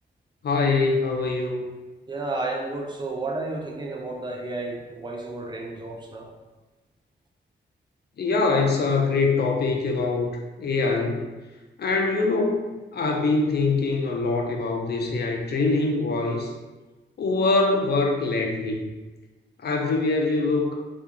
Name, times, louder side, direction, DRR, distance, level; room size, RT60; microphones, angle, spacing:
voice 1, 0.4-1.7 8.2-10.3 10.6-11.2 11.8-16.5 17.2-18.8 19.6-20.7, left 3 dB, 55° left, 1 dB, 0.4 m, -23 dB
voice 2, 2.1-6.3, right 2 dB, 25° right, 0 dB, 0.5 m, -32 dB
2.4 x 2.3 x 2.8 m, 1.2 s
cardioid pair, 85°, 20 cm